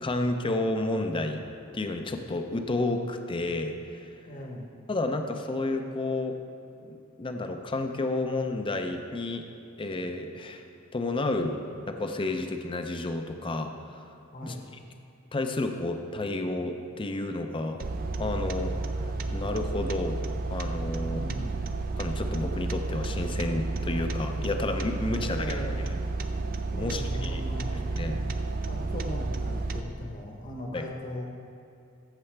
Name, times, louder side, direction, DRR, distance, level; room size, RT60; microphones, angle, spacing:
voice 1, 0.0-1.4 1.7-4.1 4.9-6.4 6.8-9.4 9.8-10.6 10.9-11.6 11.9-14.0 14.4-14.5 15.3-17.8 18.2-18.7 19.3-20.2 20.5-21.2 22.0-25.6 26.7-27.5 27.9-28.2 30.7-30.8, left 2 dB, 25° left, 5 dB, 0.5 m, -31 dB
voice 2, 4.2-4.7 14.3-14.7 21.0-21.7 25.1-25.8 26.7-28.3 28.7-31.3, left 1 dB, 40° left, 0 dB, 1.0 m, -39 dB
sound 1, 17.8-29.8, right 3 dB, 45° right, 0.4 m, -31 dB
14.0 x 6.9 x 3.3 m, 2.6 s
head